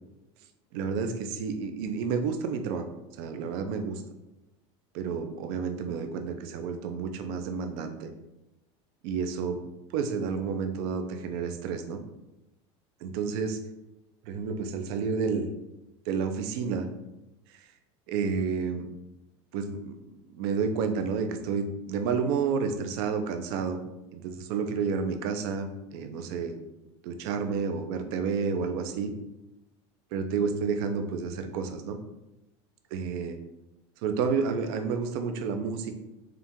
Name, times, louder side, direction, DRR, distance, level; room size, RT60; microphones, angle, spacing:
voice 1, 0.7-2.8 3.2-4.0 4.9-8.1 9.0-9.6 9.9-12.0 13.0-13.6 14.3-15.5 16.1-16.9 18.1-18.9 19.5-20.0 20.3-23.8 24.1-26.6 27.0-29.1 30.1-32.0 32.9-33.4 34.0-36.0, right 5 dB, 60° right, 7 dB, 0.5 m, -30 dB
4.4 x 2.4 x 3.6 m, 0.94 s
supercardioid pair, 155°, 15 cm